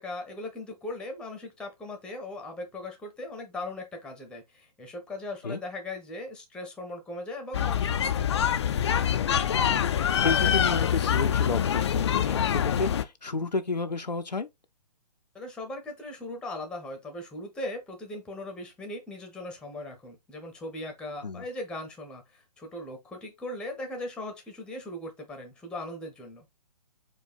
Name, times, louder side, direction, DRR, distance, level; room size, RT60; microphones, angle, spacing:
voice 1, 0.0-8.6 15.3-26.4, left 2 dB, 5° left, 0.8 m, -39 dB
sound 1, 7.5-13.0, left 9 dB, 45° left, 0.4 m, -25 dB
voice 2, 10.2-14.5 21.2-21.4, left 3 dB, 85° left, 0.7 m, -31 dB
4.5 x 2.3 x 4.3 m
figure-of-eight pair, 130°, 21 cm